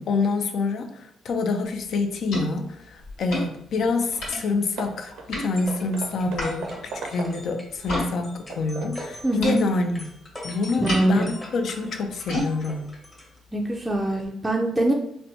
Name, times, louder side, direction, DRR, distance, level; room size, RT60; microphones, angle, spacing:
voice 1, 0.0-10.1 10.4-12.8, left 3 dB, 65° left, 6 dB, 0.4 m, -27 dB
sound 1, 1.6-8.1 8.4-14.3, left 1 dB, 85° left, 1.5 m, -36 dB
Hammer / Wood, 4.2-4.4 4.8-7.6 8.1-9.1, right 4 dB, 80° right, 0.5 m, -39 dB
sound 2, 5.5-13.4, left 1 dB, 25° left, 1.1 m, -42 dB
voice 2, 9.2-9.6 10.8-11.2 13.5-14.9, right 1 dB, 10° right, -1 dB, 0.4 m, -23 dB
4.1 x 2.2 x 2.7 m, 0.78 s
cardioid pair, 90°, 0 cm